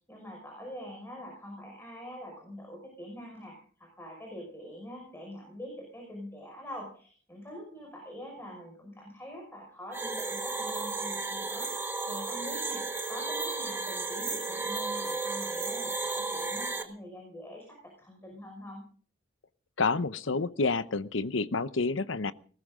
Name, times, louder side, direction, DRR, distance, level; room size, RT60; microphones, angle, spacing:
voice 1, 0.1-18.8, equal, 10° left, 1 dB, 5.6 m, -45 dB
sound 1, 9.9-16.8, right 3 dB, 10° right, 1.6 m, -33 dB
voice 2, 19.8-22.3, left 3 dB, 80° left, 14 dB, 0.9 m, -29 dB
20.0 x 18.5 x 3.8 m, 0.43 s
head